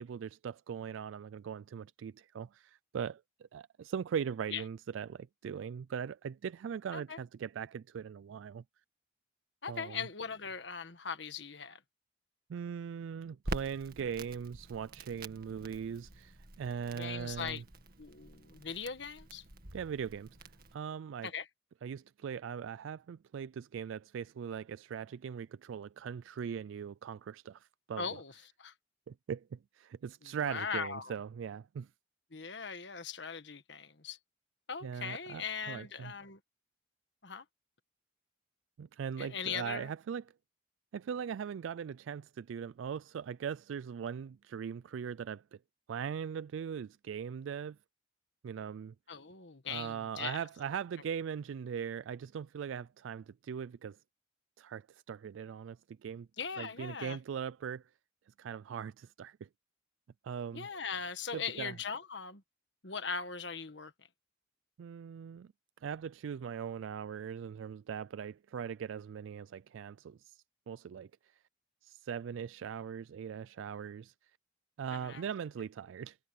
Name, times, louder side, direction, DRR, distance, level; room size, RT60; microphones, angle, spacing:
voice 1, 0.0-3.2 3.5-8.6 9.7-10.0 12.5-17.6 19.7-20.4 20.7-21.3 21.8-28.1 29.1-31.9 34.8-35.4 35.7-36.1 38.8-40.2 40.9-45.4 45.9-47.8 48.4-48.9 49.7-54.0 54.6-56.3 56.6-57.9 58.3-59.5 60.2-60.7 61.3-61.7 64.8-65.5 65.8-71.4 71.8-74.1 74.8-76.2, right 7 dB, 90° right, 0.3 m, -40 dB
voice 2, 9.6-11.8 16.9-17.6 18.0-19.4 21.2-21.5 28.0-28.7 30.2-31.2 32.3-34.2 34.7-36.4 37.2-37.4 39.2-39.9 49.1-50.4 56.4-57.2 60.5-62.4 62.8-64.1 74.9-75.2, left 6 dB, 65° left, 1.5 m, -40 dB
Crackle, 13.4-20.7, right 2 dB, 50° right, 2.1 m, -46 dB
head